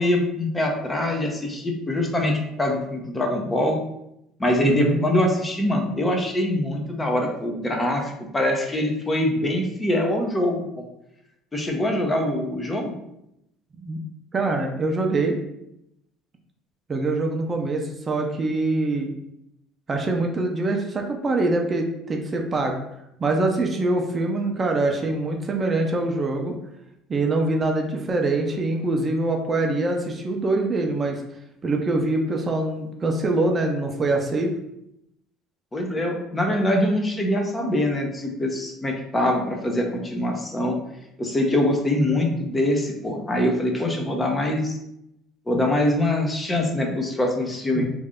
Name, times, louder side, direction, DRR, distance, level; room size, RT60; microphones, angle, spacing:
voice 1, 0.0-3.8 4.4-10.9 11.5-12.9 35.7-40.8 41.2-44.8 45.5-47.9, left 1 dB, 20° left, 2 dB, 0.8 m, -23 dB
voice 2, 4.6-5.0 13.8-14.0 14.3-15.4 16.9-19.1 19.9-22.8 23.2-26.5 27.1-31.2 31.6-34.5 47.7-47.9, right 2 dB, 30° right, 2 dB, 0.6 m, -24 dB
3.2 x 2.6 x 3.7 m, 0.81 s
supercardioid pair, 80°, 0 cm